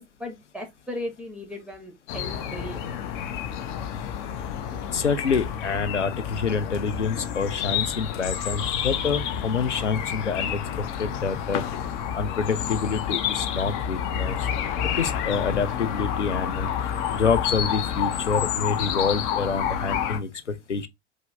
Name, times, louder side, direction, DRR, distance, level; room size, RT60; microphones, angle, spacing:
voice 1, 0.0-2.8, left 1 dB, 5° right, 1.0 m, -37 dB
sound 1, 2.1-20.2, left 9 dB, 45° left, 0.6 m, -29 dB
voice 2, 4.7-11.6 12.1-14.5 15.0-20.9, left 5 dB, 90° left, 0.5 m, -27 dB
4.7 x 2.0 x 3.3 m
figure-of-eight pair, 80°, 35 cm